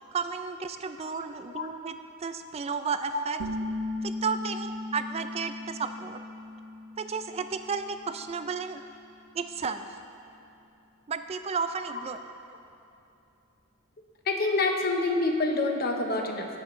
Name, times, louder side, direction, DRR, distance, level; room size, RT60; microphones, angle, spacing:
voice 1, 0.1-2.0 2.2-3.4 4.0-6.2 7.0-8.8 9.3-9.9 11.1-12.2, right 5 dB, 30° right, 9 dB, 0.3 m, -33 dB
sound 1, 3.4-8.8, left 2 dB, 90° right, 0.6 m, -38 dB
voice 2, 14.3-16.5, left 2 dB, 45° left, 3 dB, 0.9 m, -26 dB
17.5 x 7.6 x 3.1 m, 2.8 s
head